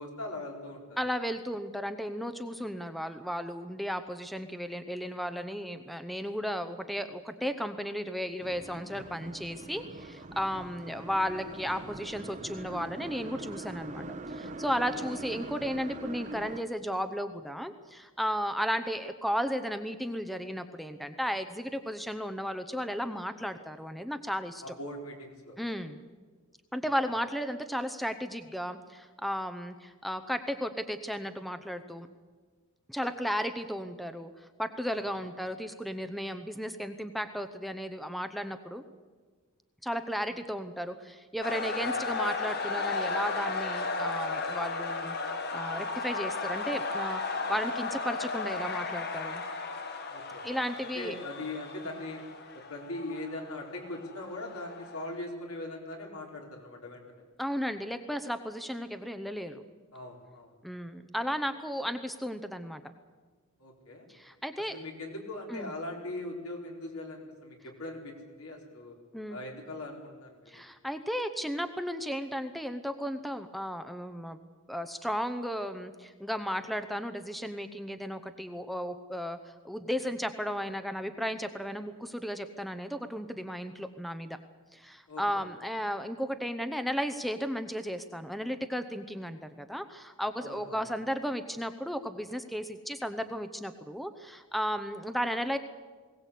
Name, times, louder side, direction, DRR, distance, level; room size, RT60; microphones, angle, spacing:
voice 1, 0.0-1.0 14.9-15.1 24.6-25.5 35.2-35.3 41.8-41.9 50.1-50.4 50.9-52.2 52.5-57.2 59.9-60.5 63.6-64.1 64.7-68.9 69.3-70.6 85.1-85.4 90.4-90.9, left 2 dB, 80° left, 1 dB, 4.4 m, -41 dB
voice 2, 1.0-24.6 25.6-26.0 26.7-32.1 32.9-38.8 39.8-45.2 45.5-47.2 47.5-49.4 50.4-51.2 57.4-59.6 60.6-62.8 64.1-64.8 65.5-65.7 69.1-69.4 70.5-74.4 74.7-79.4 79.6-84.4 84.7-95.6, equal, ahead, 9 dB, 0.8 m, -34 dB
sound 1, 8.4-16.6, right 2 dB, 35° right, 0.9 m, -42 dB
sound 2, 41.4-55.2, left 3 dB, 50° left, 1.7 m, -35 dB
21.0 x 17.5 x 8.4 m, 1.5 s
head